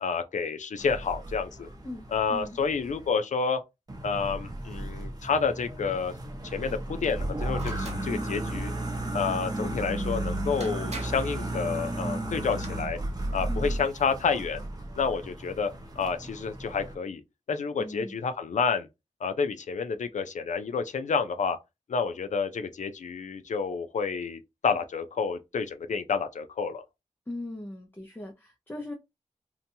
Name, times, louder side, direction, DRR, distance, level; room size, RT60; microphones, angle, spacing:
voice 1, 0.0-1.7 2.1-3.6 4.0-6.1 6.4-8.7 9.1-13.0 13.3-14.6 15.0-15.7 16.0-17.2 17.5-18.9 19.2-21.6 21.9-26.8, left 5 dB, 80° left, 0.4 m, -29 dB
sound 1, 0.8-3.1 3.9-17.0, right 1 dB, 30° right, 0.7 m, -34 dB
voice 2, 1.8-2.6 13.5-13.7 17.8-18.2 27.3-28.9, left 1 dB, 15° left, 0.5 m, -39 dB
sound 2, 7.5-8.1 10.1-10.2 10.6-11.3 12.3-12.7, right 3 dB, 65° right, 1.0 m, -42 dB
2.8 x 2.2 x 2.7 m
wide cardioid pair, 75°, 12 cm